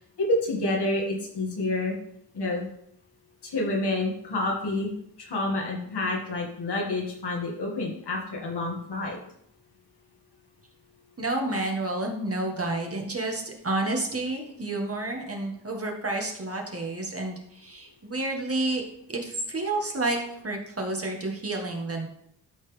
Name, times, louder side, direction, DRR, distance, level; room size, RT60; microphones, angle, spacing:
voice 1, 0.2-2.0 2.3-2.7 3.4-4.9 5.2-9.2, left 2 dB, 65° left, -1 dB, 2.3 m, -28 dB
voice 2, 11.2-18.8 19.1-22.1, right 2 dB, 30° right, 1 dB, 1.9 m, -30 dB
12.5 x 4.3 x 3.6 m, 0.71 s
cardioid pair, 65°, 44 cm